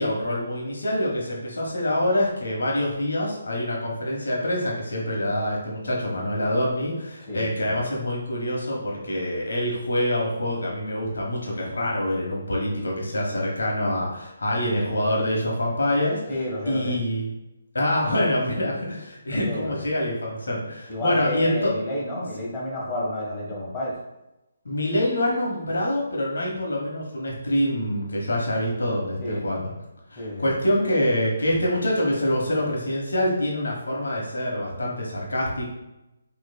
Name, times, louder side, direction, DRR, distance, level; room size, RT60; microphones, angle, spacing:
voice 1, 0.0-16.2 16.7-17.3 17.7-21.8 24.6-29.7 30.1-35.7, left 1 dB, 65° left, -2 dB, 1.2 m, -25 dB
voice 2, 7.3-7.8 16.3-17.0 19.3-19.8 20.9-23.9 29.2-29.5 30.2-30.5, left 1 dB, 20° left, -6 dB, 1.3 m, -31 dB
6.2 x 3.1 x 2.3 m, 0.94 s
figure-of-eight pair, 145°, 0 cm